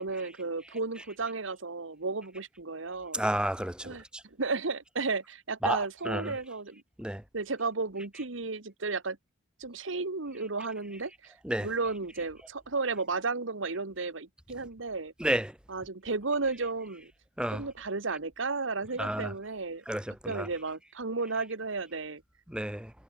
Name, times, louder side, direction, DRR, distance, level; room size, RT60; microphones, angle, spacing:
voice 1, 0.0-3.2 3.8-4.0 4.4-6.8 7.3-9.2 9.6-11.3 11.6-15.1 15.7-17.1 17.5-19.8 20.2-22.2, right 3 dB, 75° right, 1.5 m, -33 dB
voice 2, 3.1-4.0 5.6-6.3 7.0-7.2 11.4-11.7 15.2-15.5 17.4-17.6 19.0-19.3 19.9-20.5 22.5-22.9, right 1 dB, 5° right, 0.9 m, -31 dB
head